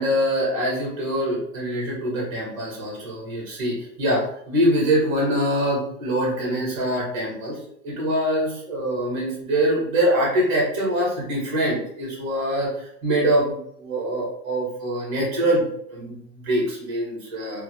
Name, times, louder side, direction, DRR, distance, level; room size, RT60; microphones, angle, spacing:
voice 1, 0.0-17.6, equal, 10° right, -3 dB, 0.5 m, -24 dB
2.3 x 2.0 x 2.7 m, 0.72 s
hypercardioid pair, 150°, 48 cm